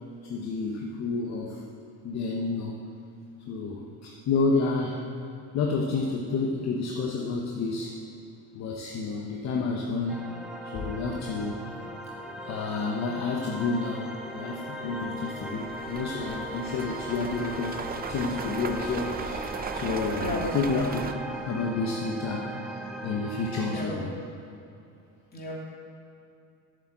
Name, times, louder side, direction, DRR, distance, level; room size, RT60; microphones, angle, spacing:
voice 1, 0.2-1.6 2.0-2.8 3.5-5.0 5.5-8.0 8.5-10.2 10.6-11.6 12.4-17.8 18.1-24.1, left 4 dB, 50° left, 0 dB, 1.1 m, -30 dB
sound 1, 10.1-23.8, right 1 dB, ahead, 0.9 m, -38 dB
sound 2, 14.4-14.5 15.0-21.1, right 5 dB, 25° right, 0.6 m, -37 dB
voice 2, 23.6-24.0 25.3-25.5, left 3 dB, 25° left, -5 dB, 3.1 m, -34 dB
8.1 x 8.1 x 7.7 m, 2.6 s
cardioid pair, 125°, 35 cm